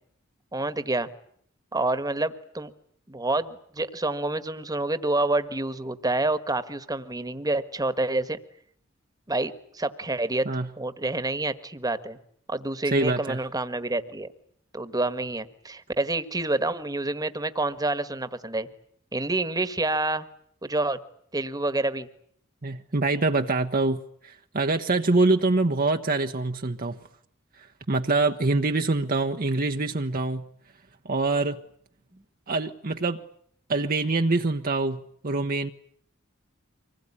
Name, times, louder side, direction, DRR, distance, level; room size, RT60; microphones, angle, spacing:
voice 1, 0.5-1.1 1.7-2.7 3.1-8.4 9.3-10.5 10.8-12.2 12.5-14.3 14.7-18.7 19.1-20.3 20.6-21.0 21.3-22.1 32.1-32.2, right 2 dB, 20° right, 1.5 m, -28 dB
voice 2, 12.9-13.4 22.6-27.0 27.9-30.4 31.0-31.6 32.5-33.2 33.7-35.7, right 3 dB, 45° right, 1.0 m, -25 dB
25.0 x 20.5 x 9.9 m
head